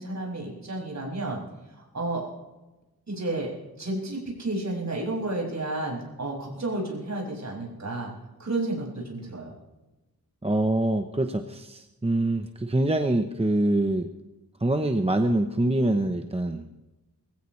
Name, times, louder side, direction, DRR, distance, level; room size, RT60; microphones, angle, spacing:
voice 1, 0.0-1.4 1.8-2.3 3.1-3.5 3.8-8.1 8.4-9.5, right 2 dB, 50° right, -2 dB, 6.5 m, -31 dB
voice 2, 10.4-14.1 14.6-16.7, right 1 dB, 15° right, 6 dB, 0.8 m, -25 dB
22.0 x 16.0 x 3.2 m, 1.0 s
wide cardioid pair, 100°, 37 cm